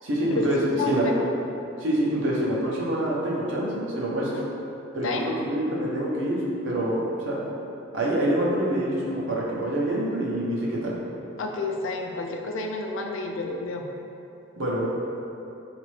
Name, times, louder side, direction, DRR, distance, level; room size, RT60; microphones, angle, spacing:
voice 1, 0.0-0.6 0.9-1.1 1.8-4.3 4.9-6.4 6.6-7.0 7.2-7.4 7.9-11.0 14.6-14.9, right 1 dB, 80° right, -5 dB, 0.7 m, -26 dB
voice 2, 0.8-1.2 4.3-4.4 5.0-5.3 11.4-13.8, left 3 dB, 80° left, 2 dB, 0.4 m, -30 dB
4.1 x 2.5 x 3.1 m, 2.8 s
head